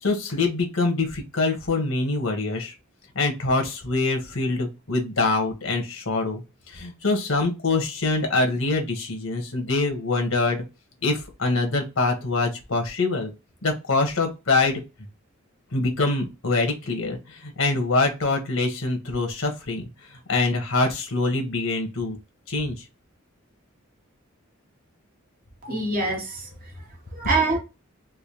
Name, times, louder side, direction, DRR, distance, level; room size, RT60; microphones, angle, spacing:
voice 1, 0.0-2.7 3.1-10.6 11.0-13.3 13.6-14.8 15.7-19.8 20.1-22.2 22.5-22.8, left 3 dB, 75° left, 1.4 m, -24 dB
voice 2, 25.6-27.6, right 3 dB, 45° right, 1.2 m, -26 dB
3.6 x 2.9 x 3.0 m
head